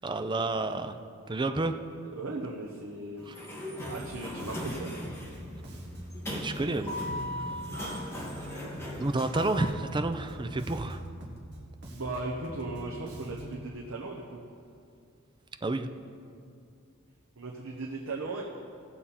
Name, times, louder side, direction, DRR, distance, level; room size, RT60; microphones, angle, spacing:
voice 1, 0.0-1.0 1.3-1.8 3.3-3.4 6.3-7.1 9.0-11.0 15.6-15.9, right 2 dB, 20° right, 8 dB, 0.5 m, -30 dB
voice 2, 2.1-3.3 3.9-5.0 11.9-14.4 17.4-18.4, right 3 dB, 75° right, -2 dB, 1.0 m, -37 dB
Sliding door, 3.2-9.7, left 1 dB, 15° left, 2.0 m, -38 dB
Bass guitar, 3.8-13.7, equal, 55° right, 1.6 m, -43 dB
17.0 x 7.3 x 4.3 m, 2.4 s
head